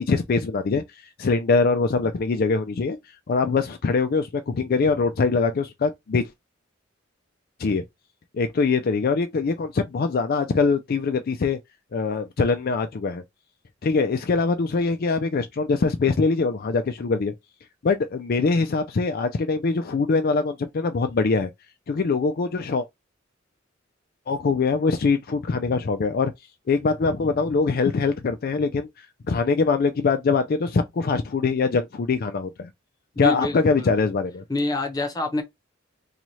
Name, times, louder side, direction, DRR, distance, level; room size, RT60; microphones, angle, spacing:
voice 1, 0.1-3.0 3.3-6.2 7.6-7.8 8.3-11.6 11.9-13.2 13.8-17.3 17.8-21.5 21.9-22.9 24.3-26.3 26.7-32.7 33.2-34.4, left 4 dB, 50° left, 0.4 m, -23 dB
voice 2, 33.2-33.9 34.5-35.4, left 2 dB, 20° left, 0.8 m, -26 dB
3.1 x 2.3 x 4.1 m
head